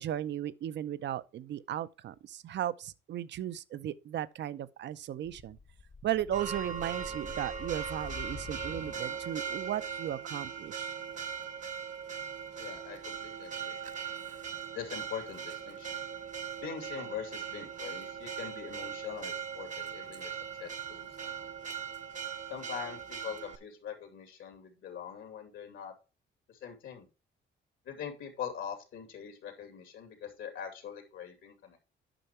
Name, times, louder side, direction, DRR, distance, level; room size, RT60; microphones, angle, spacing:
voice 1, 0.0-5.6 6.0-11.0, right 11 dB, 65° right, 0.6 m, -36 dB
sound 1, 5.2-9.6, left 4 dB, 40° left, 1.0 m, -47 dB
Church bell, 6.3-23.6, right 7 dB, 40° right, 0.9 m, -40 dB
voice 2, 12.6-13.8 14.7-16.0 16.6-21.5 22.5-25.9 26.5-27.1 27.8-31.8, left 8 dB, 80° left, 2.7 m, -43 dB
9.0 x 5.6 x 4.4 m
cardioid pair, 90°, 20 cm